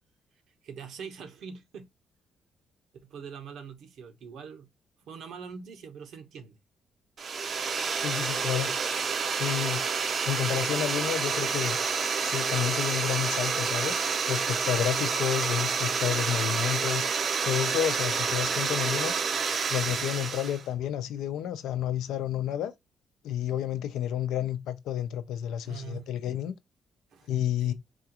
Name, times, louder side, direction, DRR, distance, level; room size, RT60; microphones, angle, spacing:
voice 1, 0.6-1.9 3.0-4.7 5.0-6.6 25.6-26.1 27.1-27.3 27.6-27.7, right 6 dB, 75° right, 0.9 m, -43 dB
sound 1, 7.2-20.6, right 5 dB, 50° right, 0.6 m, -29 dB
voice 2, 8.0-8.7 9.4-9.8 10.3-11.8 12.2-14.0 14.3-17.1 17.5-19.1 19.7-22.7 23.2-26.5 27.3-27.7, left 11 dB, 85° left, 0.6 m, -30 dB
4.3 x 2.4 x 2.8 m
cardioid pair, 90°, 0 cm